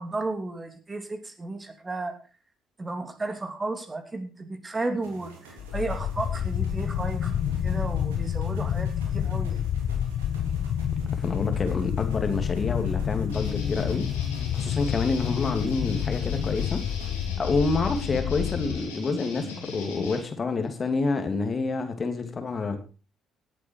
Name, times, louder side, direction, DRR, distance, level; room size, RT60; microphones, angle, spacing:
voice 1, 0.0-2.1 2.8-7.3 7.6-9.6, right 2 dB, 25° right, 6 dB, 3.0 m, -33 dB
sound 1, 5.0-17.4, right 3 dB, 80° right, 3.4 m, -48 dB
sound 2, 5.6-18.8, left 9 dB, 60° left, 1.0 m, -29 dB
voice 2, 11.1-14.1 14.5-16.8 17.4-22.8, left 4 dB, 40° left, 7 dB, 2.7 m, -28 dB
sound 3, 13.3-20.2, left 3 dB, 90° left, 4.8 m, -40 dB
18.0 x 8.4 x 4.8 m, 0.34 s
hypercardioid pair, 50°, 0 cm